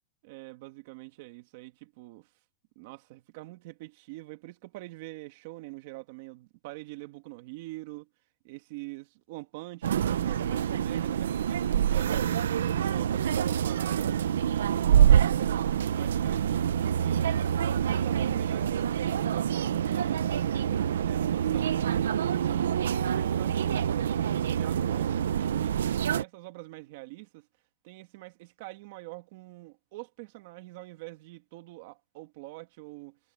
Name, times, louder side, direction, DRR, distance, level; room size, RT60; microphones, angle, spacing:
voice 1, 0.2-2.3 2.8-8.1 8.4-14.1 14.5-17.4 17.8-25.8 26.1-27.5 27.8-33.2, right 21 dB, 40° right, 2.1 m, -45 dB
sound 1, 9.8-26.2, right 9 dB, 85° right, 1.0 m, -26 dB
supercardioid pair, 170°, 0 cm